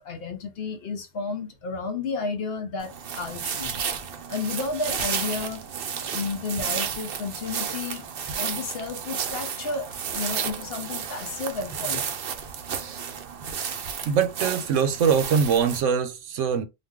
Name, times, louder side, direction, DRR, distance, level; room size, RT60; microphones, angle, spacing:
voice 1, 0.0-3.9 4.3-5.6 6.1-8.1 8.4-12.1, left 4 dB, 60° left, 0.7 m, -32 dB
sound 1, 2.8-15.8, right 7 dB, 55° right, 0.7 m, -32 dB
voice 2, 14.1-16.6, right 6 dB, 80° right, 1.0 m, -23 dB
2.5 x 2.3 x 3.5 m
omnidirectional pair, 1.3 m